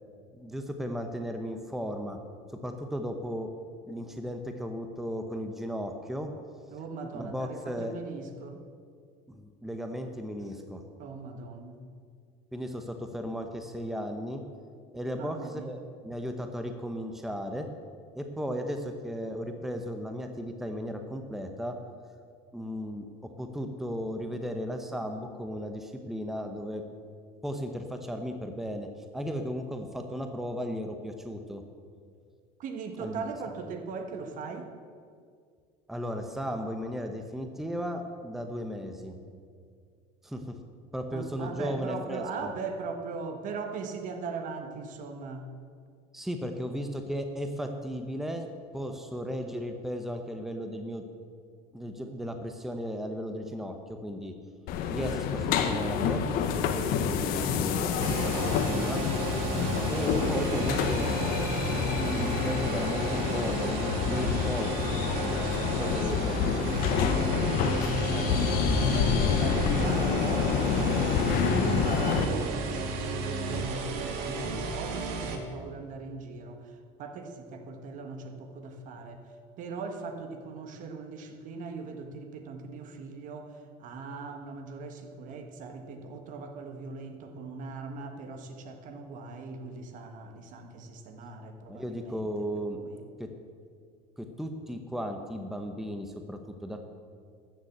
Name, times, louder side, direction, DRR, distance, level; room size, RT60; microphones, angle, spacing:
voice 1, 0.3-2.2 2.6-3.5 3.9-6.3 7.1-7.9 9.3-10.8 12.5-14.4 14.9-17.7 18.1-21.7 22.5-26.8 27.4-28.9 29.1-31.6 33.0-33.3 35.9-39.1 40.2-40.4 40.9-42.5 46.1-48.5 48.7-51.0 51.7-53.7 54.0-54.3 54.9-56.2 56.6-59.0 59.9-61.4 62.0-65.0 65.8-66.8 91.7-92.8 93.2-93.3 94.2-96.8, equal, ahead, 5 dB, 0.9 m, -35 dB
voice 2, 6.7-8.6 11.0-11.8 15.1-15.7 32.6-34.7 41.1-45.5 66.1-66.3 67.0-70.9 71.3-79.2 79.6-93.0, right 4 dB, 55° right, 6 dB, 1.5 m, -39 dB
sound 1, 54.7-72.2, left 7 dB, 65° left, 1.2 m, -28 dB
sound 2, 58.0-75.4, right 3 dB, 70° right, 1.8 m, -33 dB
13.5 x 7.2 x 8.1 m, 2.1 s
cardioid pair, 130°, 16 cm